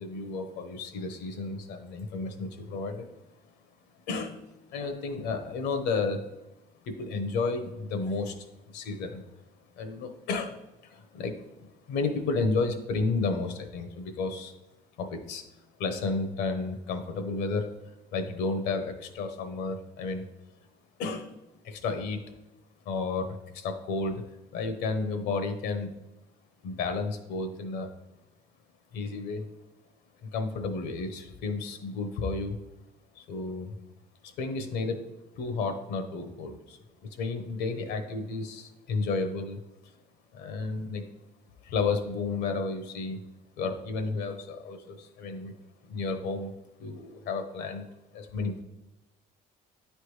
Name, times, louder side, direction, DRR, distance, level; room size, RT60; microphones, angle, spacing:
voice 1, 0.0-3.1 4.1-4.4 4.7-6.2 6.8-9.2 9.8-14.5 15.0-15.4 15.8-20.2 21.0-21.4 21.6-22.2 22.8-24.2 24.5-25.9 26.6-27.9 28.9-29.5 30.2-32.6 33.2-33.7 34.2-35.0 35.4-36.8 37.1-39.6 40.3-41.0 41.6-43.2 43.6-45.6 45.9-46.5 46.8-47.9 48.1-48.6, left 3 dB, 85° left, 7 dB, 0.9 m, -32 dB
9.5 x 3.3 x 3.2 m, 0.96 s
cardioid pair, 110°, 17 cm